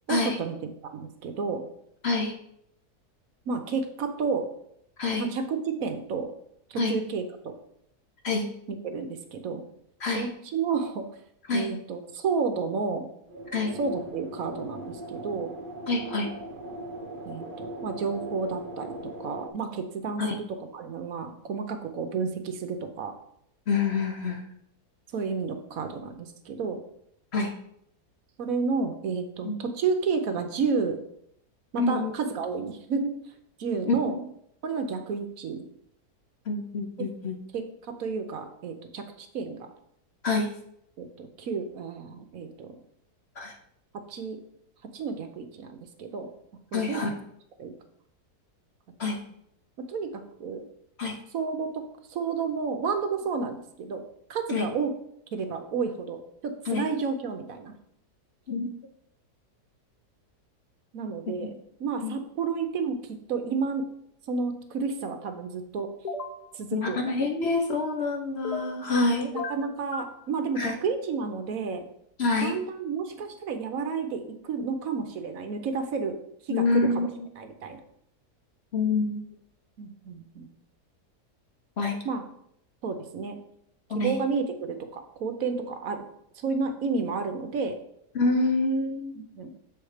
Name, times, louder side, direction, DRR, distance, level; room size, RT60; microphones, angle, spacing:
voice 1, 0.1-0.6 0.8-1.7 3.5-4.5 5.1-6.3 6.7-7.5 8.7-9.6 10.1-11.0 11.5-13.1 13.7-15.5 17.2-20.5 20.7-23.2 25.1-26.8 28.4-31.0 31.7-33.1 33.6-34.1 34.6-35.7 37.0-37.1 37.5-39.7 41.0-42.7 44.1-44.4 44.9-46.3 46.7-47.0 47.6-47.7 49.8-50.6 51.3-51.8 52.1-54.0 54.3-54.9 55.3-57.7 60.9-63.8 64.3-65.9 66.5-67.0 69.3-71.8 72.4-76.2 76.4-77.1 77.4-77.8 79.8-80.5 82.0-82.2 82.8-83.4 84.0-86.0 86.4-87.8 89.1-89.5, right 5 dB, 65° right, 7 dB, 1.1 m, -31 dB
voice 2, 2.0-2.4 5.0-5.2 6.8-6.9 8.2-8.5 10.0-10.3 11.5-11.7 13.5-13.7 15.9-16.3 20.2-20.3 23.7-24.4 27.3-27.5 29.4-29.6 31.8-32.1 34.1-34.2 36.5-37.4 40.2-40.5 43.4-43.5 46.7-47.1 49.0-49.2 51.0-51.2 54.5-54.7 56.7-56.9 58.5-58.7 61.4-61.5 62.0-62.1 66.7-69.3 70.6-70.8 72.2-72.6 76.5-77.3 78.7-79.2 81.8-82.0 83.9-84.1 88.1-89.2, left 3 dB, 50° left, 3 dB, 0.9 m, -27 dB
sound 1, 13.3-19.5, right 1 dB, 40° right, 0.9 m, -39 dB
sound 2, 66.0-66.4 68.4-69.0 69.4-70.1, left 3 dB, 80° left, 0.3 m, -34 dB
7.1 x 4.6 x 4.9 m, 0.73 s
omnidirectional pair, 1.7 m